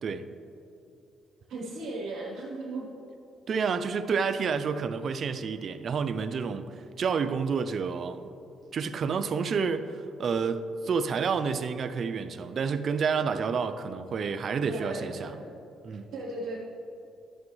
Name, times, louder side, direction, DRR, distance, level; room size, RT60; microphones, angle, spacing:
voice 1, 1.5-2.9 14.6-15.5 15.9-16.6, right 2 dB, 75° right, -5 dB, 1.2 m, -37 dB
voice 2, 3.5-8.3 8.7-15.3 15.8-16.1, right 5 dB, 55° right, 11 dB, 0.4 m, -29 dB
11.0 x 6.9 x 3.2 m, 2.7 s
cardioid pair, 90°, 0 cm